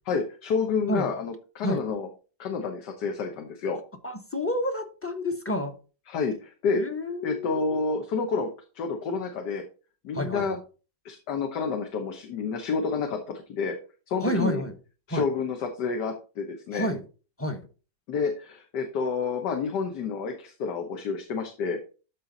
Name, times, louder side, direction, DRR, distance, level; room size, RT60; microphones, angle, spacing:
voice 1, 0.1-2.1 2.4-3.8 6.1-6.8 7.2-8.5 8.7-9.6 10.0-10.6 11.0-13.8 14.1-14.6 15.1-16.9 18.1-21.8, left 5 dB, 75° left, 1.7 m, -29 dB
voice 2, 4.0-5.7 6.8-7.8 10.1-10.6 14.2-14.7 15.1-15.3 16.7-17.0 17.4-17.6, left 1 dB, 10° left, 0.8 m, -29 dB
12.5 x 4.3 x 4.0 m
omnidirectional pair, 1.8 m